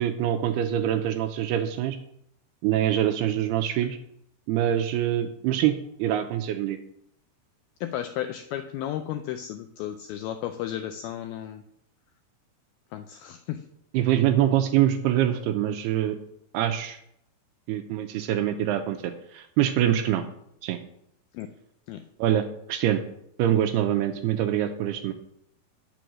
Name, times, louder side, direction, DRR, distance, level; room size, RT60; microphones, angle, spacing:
voice 1, 0.0-2.0 2.6-4.0 4.5-6.8 13.9-16.2 16.5-17.0 17.7-20.2 20.6-20.8 22.2-23.0 23.4-25.1, right 11 dB, 80° right, 8 dB, 2.4 m, -24 dB
voice 2, 7.8-11.6 12.9-13.6 21.3-21.5 21.9-22.0, left 11 dB, 85° left, 7 dB, 2.2 m, -33 dB
9.2 x 7.0 x 6.2 m, 0.72 s
omnidirectional pair, 5.0 m